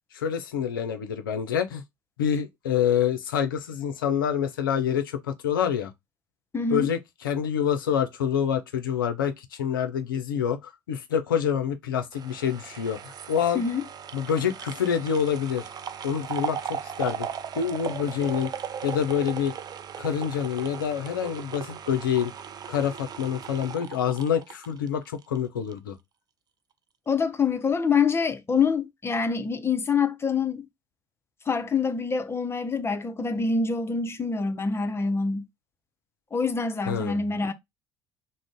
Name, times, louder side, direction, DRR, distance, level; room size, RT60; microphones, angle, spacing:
voice 1, 0.1-1.8 2.2-5.9 6.7-13.6 14.1-15.7 16.0-17.3 17.6-18.5 18.8-19.5 20.0-22.3 22.7-26.0 36.9-37.2, left 8 dB, 80° left, 0.4 m, -27 dB
voice 2, 6.5-6.9 13.5-13.8 27.1-30.7 31.5-35.5 36.3-37.5, left 5 dB, 25° left, 0.5 m, -25 dB
sound 1, 12.1-25.4 25.7-25.8, right 8 dB, 35° right, 0.4 m, -37 dB
2.4 x 2.0 x 3.5 m
figure-of-eight pair, 55°, 11 cm